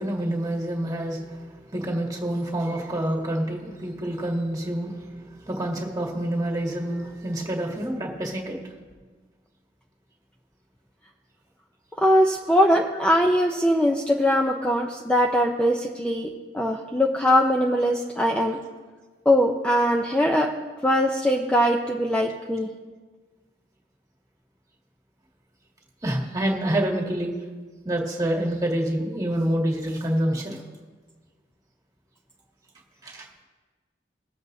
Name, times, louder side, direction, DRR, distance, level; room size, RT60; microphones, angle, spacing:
voice 1, 0.0-1.5 1.7-5.0 5.5-8.6 26.0-27.3 27.9-30.6 33.0-33.3, right 1 dB, 20° right, -1 dB, 1.8 m, -27 dB
voice 2, 12.0-18.6 19.3-20.5 20.8-22.7, equal, 5° left, 0 dB, 0.5 m, -21 dB
22.0 x 7.6 x 2.7 m, 1.4 s
head